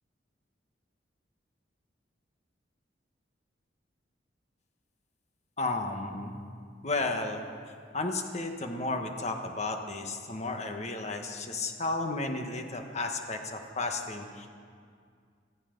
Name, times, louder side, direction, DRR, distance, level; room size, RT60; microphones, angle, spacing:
voice 1, 5.6-6.4 6.8-7.4 7.9-14.2, left 2 dB, 40° left, 5 dB, 1.3 m, -33 dB
17.5 x 12.5 x 5.2 m, 2.1 s
head